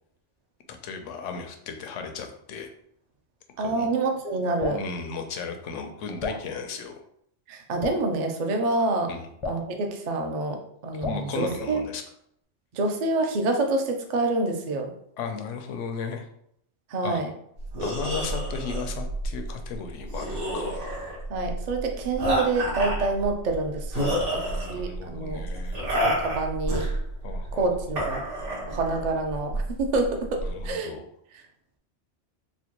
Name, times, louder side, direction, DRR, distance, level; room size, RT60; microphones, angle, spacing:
voice 1, 0.8-2.7 3.6-3.9 4.7-7.0 9.1-9.3 10.9-12.0 15.2-16.3 17.0-17.2 17.8-20.8 24.0-25.9 27.2-27.9 30.4-31.0, left 5 dB, 85° left, 5 dB, 0.9 m, -35 dB
voice 2, 3.6-4.8 7.5-9.1 9.5-11.8 12.7-14.9 16.9-17.3 21.3-24.4 24.7-25.4 25.9-26.9 27.6-28.2 28.7-30.9 31.3-31.4, right 2 dB, 55° right, 4 dB, 0.5 m, -27 dB
Drip, 4.6-4.9 6.2-6.5 7.8-8.1 9.4-9.7 11.0-11.3, left 3 dB, 40° left, 0.4 m, -32 dB
sound 1, 17.6-30.7, right 1 dB, 75° right, 1.7 m, -30 dB
4.2 x 2.2 x 2.9 m, 0.71 s
omnidirectional pair, 1.2 m